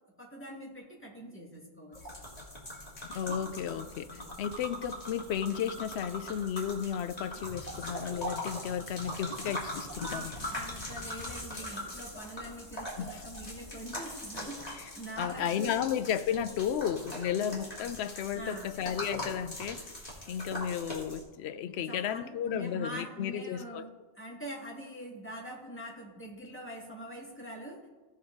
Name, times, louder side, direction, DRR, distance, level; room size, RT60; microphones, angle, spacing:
voice 1, 0.2-2.0 10.0-15.8 18.3-18.7 21.9-27.8, right 1 dB, 10° left, -3 dB, 2.0 m, -44 dB
sound 1, 1.9-21.2, left 1 dB, 35° left, 2.3 m, -41 dB
voice 2, 3.1-10.3 13.0-13.5 14.7-14.9 15.2-19.9 20.3-23.9, left 9 dB, 75° left, 11 dB, 0.8 m, -33 dB
16.0 x 5.4 x 3.9 m, 1.3 s
omnidirectional pair, 1.1 m